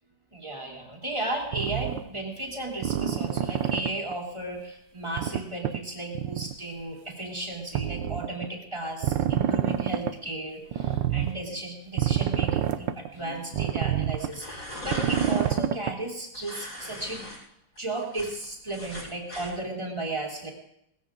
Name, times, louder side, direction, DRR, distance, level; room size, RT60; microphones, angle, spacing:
voice 1, 0.3-17.3 17.8-20.5, right 2 dB, 15° right, -1 dB, 3.1 m, -34 dB
sound 1, 1.5-2.0 2.8-4.1 5.2-5.8 6.2-6.5 7.8-8.5 9.0-10.1 10.7-11.3 12.0-13.1 13.5-14.4 14.9-16.0, right 10 dB, 70° right, 1.4 m, -27 dB
sound 2, 14.2-15.5 16.3-17.4 17.8-19.5, equal, 45° left, 8.0 m, -39 dB
19.0 x 15.0 x 3.8 m, 0.77 s
omnidirectional pair, 2.3 m